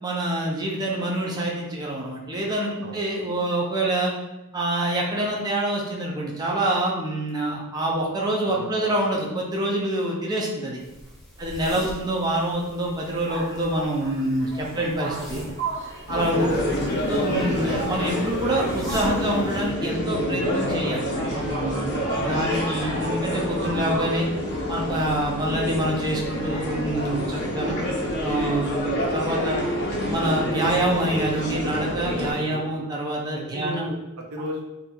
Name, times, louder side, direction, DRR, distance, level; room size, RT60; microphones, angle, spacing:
voice 1, 0.0-4.1 4.5-10.8 11.4-15.4 16.1-16.6 17.1-24.3 24.7-27.8 28.2-29.6 30.1-33.9, right 1 dB, 20° right, -3 dB, 0.5 m, -26 dB
voice 2, 8.5-9.2 11.4-11.6 12.2-12.3 14.7-15.0 16.0-16.2 32.4-32.8 33.3-34.6, equal, 90° right, 0 dB, 0.7 m, -37 dB
sound 1, 10.8-19.7, equal, ahead, 0.8 m, -43 dB
sound 2, 13.0-27.9, right 2 dB, 60° right, 1.3 m, -38 dB
sound 3, 16.1-32.3, equal, 50° left, 0.7 m, -27 dB
4.2 x 2.7 x 2.3 m, 0.99 s
head